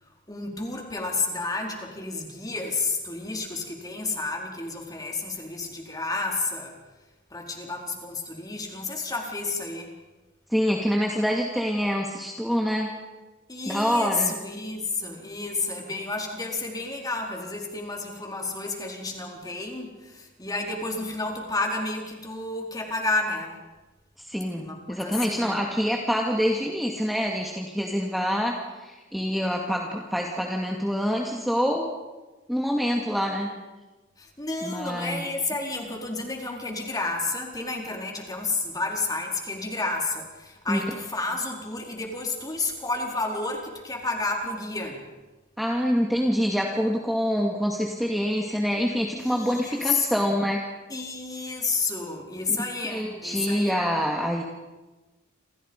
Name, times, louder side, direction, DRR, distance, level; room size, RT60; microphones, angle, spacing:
voice 1, 0.3-6.7 7.3-9.9 13.5-23.6 24.6-25.5 34.2-45.0 49.2-50.2 50.9-53.9, left 3 dB, 20° left, 1 dB, 4.5 m, -31 dB
voice 2, 10.5-12.9 13.7-14.3 24.2-31.9 32.5-33.5 34.6-35.3 40.7-40.8 45.6-50.6 52.5-54.4, equal, ahead, 0 dB, 2.3 m, -26 dB
28.5 x 28.0 x 5.5 m, 1.2 s
head